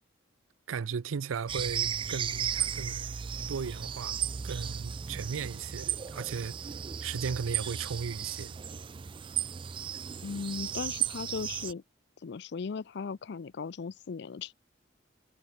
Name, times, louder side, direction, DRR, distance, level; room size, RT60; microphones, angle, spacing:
voice 1, 0.7-3.0 3.5-4.2 4.4-6.6 7.0-8.5, right 6 dB, 90° right, 0.5 m, -36 dB
sound 1, 1.5-11.7, right 8 dB, 25° right, 0.3 m, -35 dB
voice 2, 10.2-11.8 12.2-14.5, left 5 dB, 60° left, 0.4 m, -37 dB
head